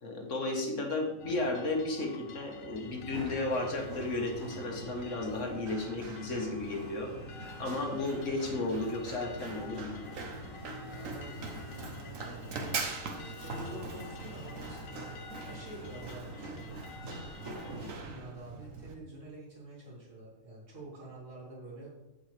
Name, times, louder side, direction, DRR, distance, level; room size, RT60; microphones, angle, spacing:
voice 1, 0.0-10.1, left 2 dB, 70° left, 2 dB, 1.7 m, -34 dB
sound 1, 1.2-17.9, left 6 dB, 85° left, 1.1 m, -50 dB
sound 2, 2.3-17.2, left 1 dB, 40° left, 2.3 m, -56 dB
Run, 2.9-18.9, right 3 dB, 85° right, 1.4 m, -42 dB
voice 2, 10.8-12.9 13.2-15.1 15.4-16.8 17.6-21.9, right 1 dB, 70° right, -5 dB, 3.5 m, -48 dB
15.0 x 5.4 x 3.3 m, 0.98 s
omnidirectional pair, 1.3 m